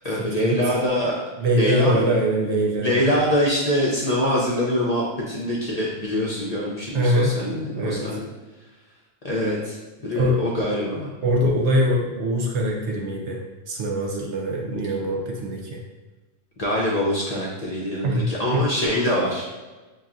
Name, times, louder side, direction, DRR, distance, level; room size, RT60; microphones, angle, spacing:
voice 1, 0.0-1.1 1.5-2.1 2.8-8.3 9.2-9.7 10.0-11.1 16.6-19.5, equal, 40° left, -5 dB, 0.6 m, -24 dB
voice 2, 1.4-3.1 6.9-7.4 7.7-8.1 10.1-10.4 11.2-15.8 18.0-18.6, equal, 70° right, 0 dB, 1.0 m, -23 dB
5.6 x 2.3 x 2.5 m, 1.2 s
omnidirectional pair, 1.2 m